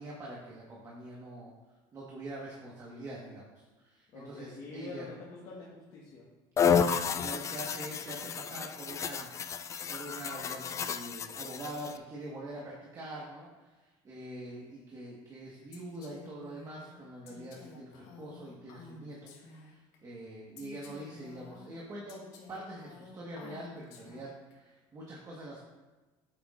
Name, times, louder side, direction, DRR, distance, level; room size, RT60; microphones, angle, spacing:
voice 1, 0.0-1.5 1.9-5.1 6.6-9.3 9.9-22.2 22.5-25.6, right 1 dB, 30° right, -4 dB, 1.5 m, -44 dB
voice 2, 4.1-6.3, left 4 dB, 55° left, -5 dB, 1.6 m, -45 dB
sound 1, 6.6-12.0, left 7 dB, 25° left, 0.4 m, -31 dB
Female speech woman speaking, 15.7-20.0 20.6-24.5, left 4 dB, 80° left, 1.5 m, -52 dB
9.2 x 7.8 x 2.5 m, 1.2 s
cardioid pair, 125°, 11 cm